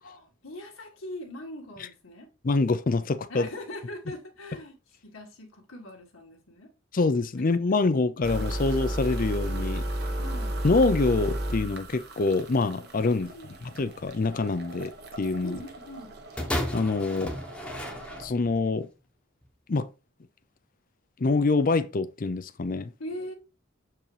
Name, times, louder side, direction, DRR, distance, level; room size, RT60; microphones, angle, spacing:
voice 1, 0.0-2.3 3.3-4.8 5.0-6.7 7.7-7.8 10.1-10.6 13.1-13.5 15.4-16.2 23.0-23.3, left 1 dB, 80° left, 1.8 m, -41 dB
voice 2, 2.4-3.5 6.9-9.8 10.6-13.3 13.6-14.9 15.2-15.6 16.7-17.3 18.2-18.9 19.7-19.9 21.2-22.9, left 3 dB, 45° left, 0.5 m, -25 dB
sound 1, 8.2-18.3, right 1 dB, 50° right, 1.1 m, -34 dB
sound 2, 16.4-18.6 19.4-19.5, left 1 dB, 5° left, 1.0 m, -33 dB
7.3 x 4.7 x 3.3 m
head